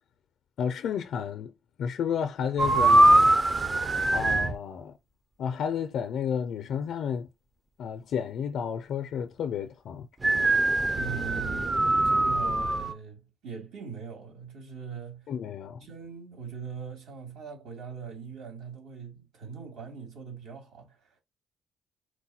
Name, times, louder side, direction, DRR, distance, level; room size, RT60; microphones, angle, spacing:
voice 1, 0.6-1.5 1.8-3.3 4.0-5.0 5.4-7.3 7.8-10.1 15.3-15.8, left 7 dB, 65° left, 0.5 m, -31 dB
sound 1, 2.6-4.6 10.2-12.9, right 2 dB, 20° right, 0.5 m, -22 dB
voice 2, 11.0-15.3 15.8-21.2, right 6 dB, 80° right, 2.5 m, -41 dB
4.5 x 2.2 x 4.2 m
cardioid pair, 120°, 0 cm